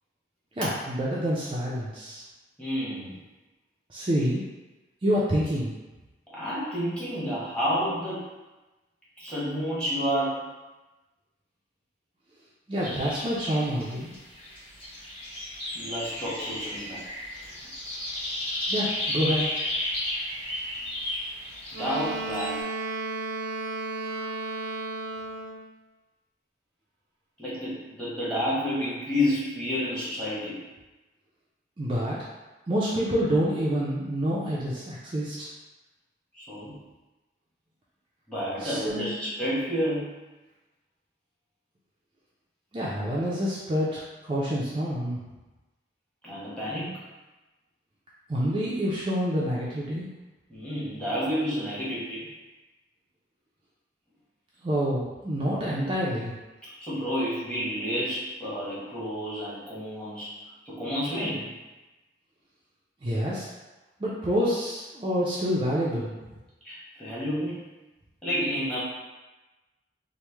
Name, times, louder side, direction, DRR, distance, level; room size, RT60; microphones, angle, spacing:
voice 1, 0.6-2.2 3.9-4.4 5.0-5.7 12.7-14.1 18.7-19.5 31.8-32.2 32.7-35.5 38.6-39.1 42.7-45.2 48.3-50.1 54.6-56.3 63.0-63.5 64.0-66.1, equal, 30° right, -7 dB, 0.4 m, -27 dB
voice 2, 2.6-3.2 6.3-8.2 9.2-10.4 15.7-17.0 21.8-22.6 27.4-30.6 36.3-36.8 38.3-40.1 46.2-47.0 50.5-52.3 56.7-61.5 66.6-67.7 68.2-68.8, equal, 5° left, -10 dB, 1.0 m, -30 dB
sound 1, 12.8-22.6, left 1 dB, 30° left, 1.3 m, -33 dB
Wind instrument woodwind instrument, 21.7-25.7, right 2 dB, 85° right, 0.6 m, -33 dB
3.1 x 2.1 x 3.3 m, 1.1 s
head